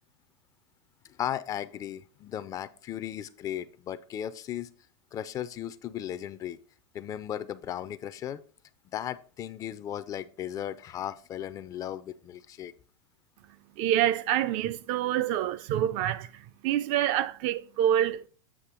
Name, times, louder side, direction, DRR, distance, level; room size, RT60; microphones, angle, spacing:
voice 1, 1.0-4.7 5.1-6.6 6.9-8.4 8.9-12.7, left 10 dB, 25° left, 0.4 m, -36 dB
voice 2, 13.8-18.2, right 11 dB, 45° right, 0.4 m, -27 dB
8.3 x 2.8 x 6.2 m
supercardioid pair, 135°, 13 cm